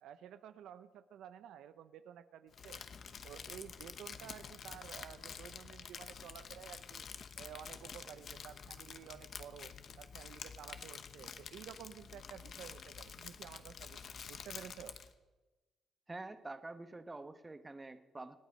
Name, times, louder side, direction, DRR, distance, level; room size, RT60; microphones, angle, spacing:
voice 1, 0.0-2.8 3.2-7.0 7.4-14.9, right 9 dB, 80° right, 12 dB, 0.6 m, -52 dB
Crumpling crinkling, 2.5-15.1, left 6 dB, 55° left, 1.0 m, -49 dB
voice 2, 16.1-18.4, right 2 dB, 20° right, 10 dB, 1.1 m, -47 dB
25.5 x 9.3 x 5.4 m, 1.2 s
cardioid pair, 90°, 0 cm